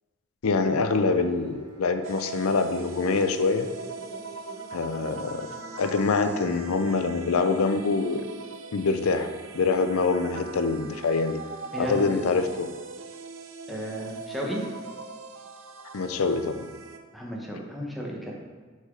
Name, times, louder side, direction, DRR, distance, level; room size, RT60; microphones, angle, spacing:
voice 1, 0.4-3.7 4.7-5.5 5.8-8.3 8.7-11.4 11.8-12.7 15.9-16.7, left 4 dB, 80° left, 9 dB, 0.5 m, -25 dB
sound 1, 1.2-11.7, right 2 dB, 20° right, 1.2 m, -48 dB
sound 2, 2.0-17.0, right 4 dB, 65° right, 0.5 m, -42 dB
voice 2, 11.7-12.1 13.7-14.6 17.1-18.3, equal, ahead, -3 dB, 1.0 m, -33 dB
6.2 x 5.6 x 3.8 m, 1.5 s
head